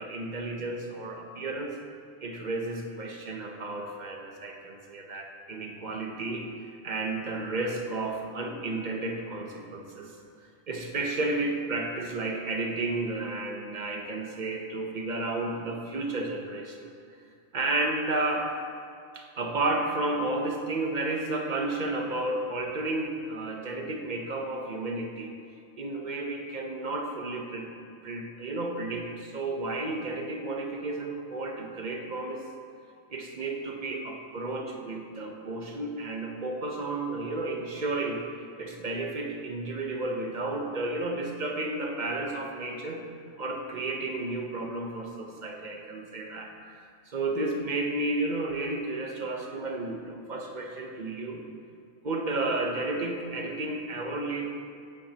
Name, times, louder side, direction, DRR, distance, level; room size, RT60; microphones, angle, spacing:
voice 1, 0.0-1.7 2.2-6.5 6.8-10.1 10.7-16.9 17.5-18.5 19.1-25.3 25.8-27.7 28.0-32.4 33.1-38.2 38.6-43.1 43.4-51.4 52.0-54.5, right 2 dB, 45° right, 2 dB, 0.8 m, -32 dB
8.8 x 8.8 x 2.8 m, 2.5 s
omnidirectional pair, 1.3 m